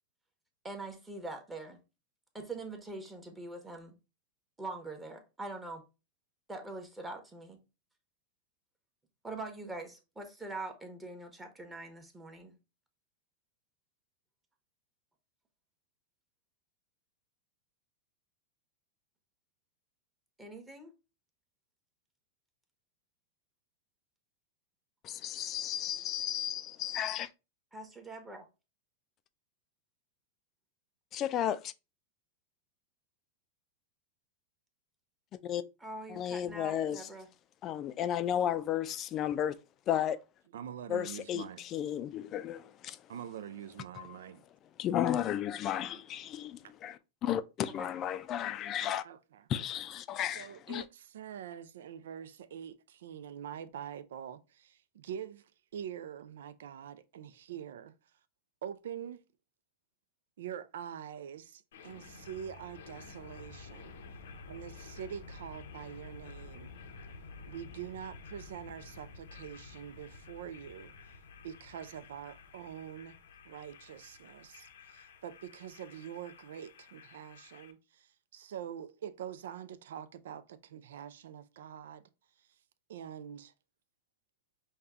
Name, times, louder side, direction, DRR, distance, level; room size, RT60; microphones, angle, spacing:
voice 1, 0.6-1.8 2.3-3.9 4.6-5.8 6.5-7.6 9.2-12.5 20.4-20.9 27.7-28.5 35.8-37.3 47.8-47.9, right 2 dB, 10° right, 1.0 m, -43 dB
voice 2, 25.0-27.3 31.1-31.7 35.3-35.6 36.1-37.1 37.6-39.5 39.9-40.2 40.9-43.0 44.0-44.1 44.8-49.0 49.5-50.8, left 10 dB, 35° left, 0.4 m, -33 dB
voice 3, 40.5-41.6 43.1-44.4 45.9-46.0 49.0-49.4 50.2-57.9 58.6-59.2 60.4-64.0 64.5-66.7 67.5-70.9 71.4-73.2 73.4-82.0 82.4-82.5 82.9-83.5, right 9 dB, 80° right, 0.5 m, -45 dB
sound 1, 61.7-77.7, left 4 dB, 85° left, 0.7 m, -51 dB
5.4 x 2.3 x 3.5 m
supercardioid pair, 135°, 0 cm